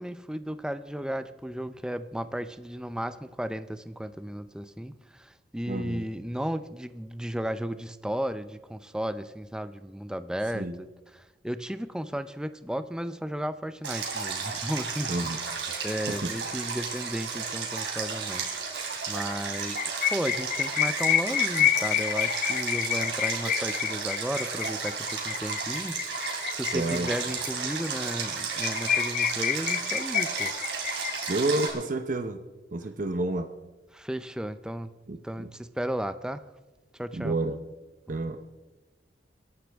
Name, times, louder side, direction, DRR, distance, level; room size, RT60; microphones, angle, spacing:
voice 1, 0.0-15.5 15.8-18.6 19.1-30.5 33.9-34.9 35.2-36.4 37.0-37.3, equal, 5° right, 12 dB, 0.5 m, -34 dB
voice 2, 5.7-6.0 10.5-10.8 15.1-15.4 16.1-16.3 26.7-27.1 31.3-32.4 32.7-33.5 35.1-35.5 37.1-37.6 38.1-38.4, right 2 dB, 50° right, 7 dB, 0.8 m, -29 dB
Stream, 13.8-31.7, right 5 dB, 80° right, 3.1 m, -33 dB
sound 1, 19.5-27.5 27.8-27.9 28.2-28.3 28.6-31.7, left 10 dB, 50° left, 0.7 m, -28 dB
22.5 x 11.5 x 3.5 m, 1.1 s
head